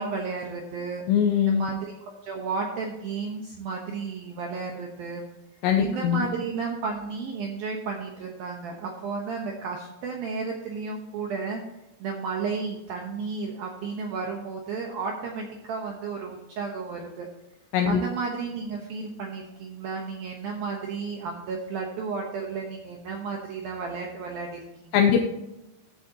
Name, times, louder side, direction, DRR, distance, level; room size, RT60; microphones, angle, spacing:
voice 1, 0.0-1.0 1.4-1.9 2.2-5.3 5.8-11.6 12.0-17.3 17.8-25.1, right 4 dB, 70° right, 1 dB, 2.3 m, -33 dB
voice 2, 1.1-1.7 5.6-6.3 17.7-18.0 24.9-25.2, left 8 dB, 80° left, 3 dB, 2.7 m, -21 dB
14.0 x 8.4 x 2.9 m, 0.96 s
omnidirectional pair, 5.7 m